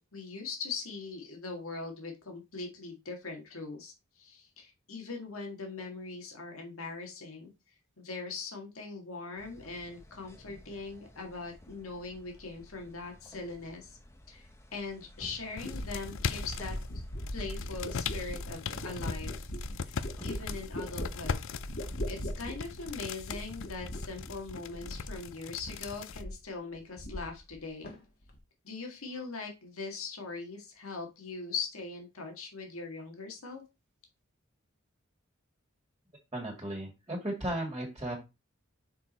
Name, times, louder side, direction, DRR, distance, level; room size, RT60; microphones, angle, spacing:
voice 1, 0.1-14.0 14.3-17.0 17.3-19.5 19.8-21.4 22.1-27.9 28.6-33.6, left 4 dB, 85° left, 2 dB, 1.9 m, -41 dB
sound 1, 9.4-22.0, equal, 15° left, 0.9 m, -55 dB
sound 2, 14.9-15.0 15.6-25.3 25.6-26.5 26.7-27.6 27.8-28.4, equal, 50° left, 1.5 m, -40 dB
sound 3, 15.6-16.9 17.2-26.2, left 6 dB, 65° left, 0.5 m, -40 dB
voice 2, 36.3-38.1, right 1 dB, 20° right, 0 dB, 1.9 m, -35 dB
5.9 x 4.8 x 4.2 m, 0.25 s
head